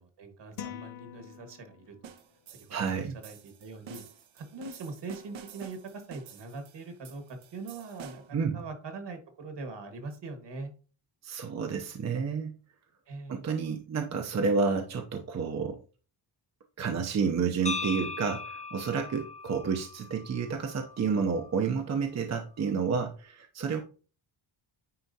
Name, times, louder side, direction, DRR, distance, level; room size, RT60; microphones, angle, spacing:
voice 1, 0.0-2.1 2.6-4.0 4.3-10.7 13.1-13.4, right 3 dB, 65° right, 6 dB, 1.7 m, -42 dB
sound 1, 0.6-2.1, left 10 dB, 70° left, 0.7 m, -44 dB
sound 2, 2.0-8.4, right 7 dB, 80° right, 1.1 m, -49 dB
voice 2, 2.7-3.2 8.3-8.6 11.2-12.6 13.3-15.8 16.8-23.8, right 5 dB, 35° right, 3 dB, 0.7 m, -30 dB
sound 3, 17.7-21.7, left 4 dB, 15° left, 0.4 m, -39 dB
9.5 x 4.2 x 2.8 m, 0.37 s
wide cardioid pair, 140°, 46 cm